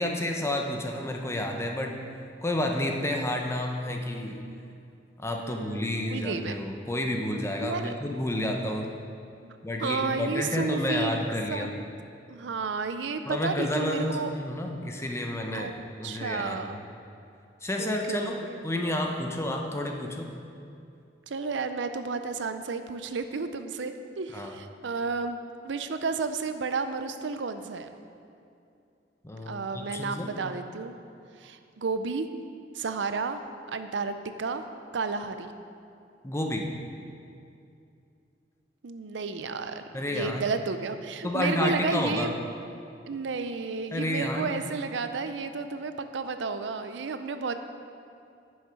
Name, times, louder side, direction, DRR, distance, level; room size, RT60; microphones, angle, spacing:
voice 1, 0.0-2.0 2.4-4.4 5.2-8.9 9.6-11.7 13.3-15.7 16.0-16.8 17.6-20.3 24.3-24.5 29.2-30.3 36.2-36.7 39.9-40.4 41.2-42.3 43.9-44.6, left 1 dB, 15° left, 2 dB, 0.8 m, -30 dB
voice 2, 5.4-6.6 7.6-7.9 9.4-9.5 9.8-11.8 12.3-14.3 15.5-15.7 16.0-16.8 17.8-18.6 21.3-25.4 25.6-27.9 29.5-30.9 31.4-32.3 32.7-33.4 33.7-34.6 34.9-35.5 38.8-42.3 43.1-47.5, right 4 dB, 75° right, 9 dB, 0.5 m, -32 dB
10.5 x 6.4 x 5.2 m, 2.5 s
head